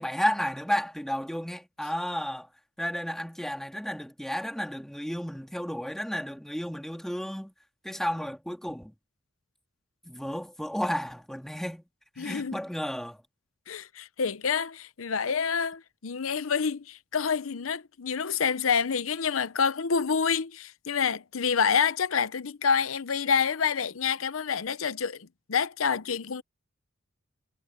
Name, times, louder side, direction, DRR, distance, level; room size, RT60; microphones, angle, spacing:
voice 1, 0.0-2.5 2.8-7.5 7.8-8.9 10.0-11.8 12.2-13.2, equal, ahead, 2.6 m, -32 dB
voice 2, 12.2-12.6 13.7-26.4, left 6 dB, 75° left, 0.7 m, -28 dB
head